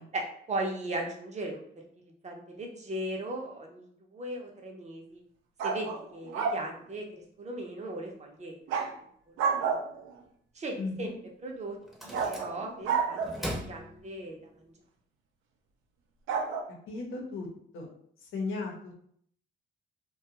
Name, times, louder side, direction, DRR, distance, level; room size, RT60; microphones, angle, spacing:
voice 1, 0.1-5.2 5.6-8.5 9.3-9.8 10.5-11.1 11.4-11.8 12.0-14.7, right 1 dB, 35° right, 1 dB, 0.6 m, -38 dB
sound 1, 5.6-6.7 8.7-8.9 9.4-10.1 12.1-13.5 16.3-16.6, right 5 dB, 80° right, 0.5 m, -30 dB
voice 2, 10.8-11.1 16.7-17.5 17.7-17.9 18.2-19.0, left 3 dB, 90° left, 0 dB, 0.8 m, -36 dB
sound 2, 11.8-12.9 13.2-14.6, equal, ahead, 0.7 m, -39 dB
2.5 x 2.3 x 2.8 m, 0.63 s
cardioid pair, 90°, 20 cm